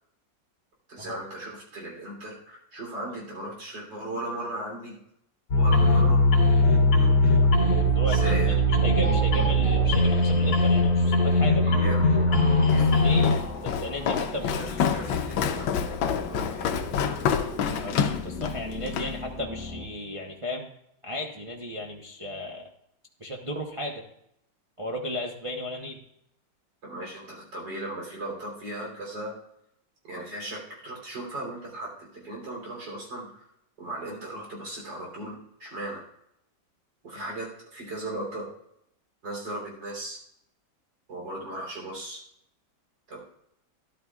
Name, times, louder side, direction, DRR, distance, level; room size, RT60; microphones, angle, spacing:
voice 1, 0.9-5.0 5.5-6.2 7.0-7.3 8.1-8.6 11.6-13.2 14.5-15.9 16.2-16.8 26.8-29.4 30.0-33.5 33.8-36.0 37.0-38.5 39.2-40.2 41.1-42.2 43.1-43.2, right 1 dB, 70° right, -1 dB, 3.9 m, -37 dB
sound 1, 5.5-13.3, left 1 dB, 60° left, 3.3 m, -20 dB
voice 2, 7.9-11.8 12.7-14.7 17.6-20.7 21.0-22.7 23.2-24.0 24.8-26.0, left 1 dB, 30° right, 0 dB, 0.6 m, -35 dB
sound 2, 8.4-19.8, left 3 dB, 40° left, 1.8 m, -38 dB
Walk footsteps, 12.7-19.2, left 7 dB, 85° left, 1.5 m, -28 dB
13.0 x 11.5 x 2.4 m, 0.77 s
omnidirectional pair, 2.0 m